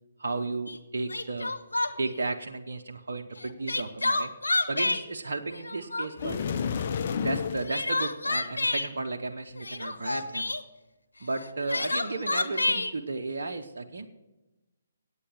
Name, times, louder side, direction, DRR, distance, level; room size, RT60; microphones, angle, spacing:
voice 1, 0.2-1.5 2.0-4.3 4.7-6.6 7.2-10.5 11.2-14.1, right 3 dB, 65° right, 4 dB, 0.8 m, -34 dB
Crying sobbing, 0.7-0.8 1.1-2.2 3.4-5.0 5.5-6.3 7.4-8.9 9.6-10.6 11.4-12.9, left 2 dB, 80° left, 1.0 m, -29 dB
sound 1, 6.2-7.7, left 6 dB, 45° left, 0.6 m, -30 dB
8.9 x 8.3 x 7.4 m, 1.0 s
figure-of-eight pair, 140°, 0 cm